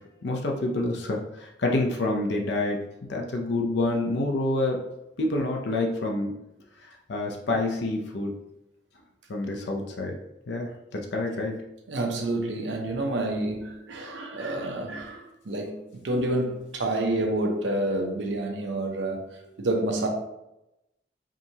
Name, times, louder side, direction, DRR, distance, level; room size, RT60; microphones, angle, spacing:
voice 1, 0.2-2.8 3.1-4.8 5.2-6.3 6.8-8.3 9.3-10.2 10.5-11.6, left 2 dB, 75° left, 0.5 m, -27 dB
voice 2, 11.9-19.2 19.6-20.1, right 1 dB, 90° right, 0.8 m, -28 dB
4.9 x 2.7 x 2.8 m
head